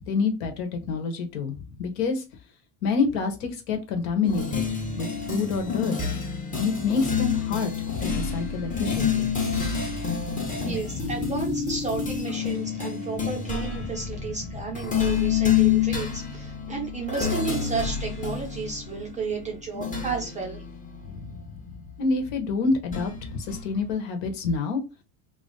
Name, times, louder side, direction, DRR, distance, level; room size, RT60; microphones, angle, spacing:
voice 1, 0.1-2.2 2.8-4.6 5.0-6.0 6.6-7.7 8.0-9.3 10.4-11.1 14.4-14.5 21.1-21.4 22.0-24.8, left 4 dB, 70° left, 5 dB, 1.2 m, -27 dB
sound 1, 4.2-22.1 22.9-23.9, left 7 dB, 15° left, 0.8 m, -28 dB
voice 2, 10.6-20.6, right 5 dB, 15° right, 0 dB, 0.4 m, -32 dB
3.1 x 2.6 x 3.7 m, 0.27 s
cardioid pair, 145°, 49 cm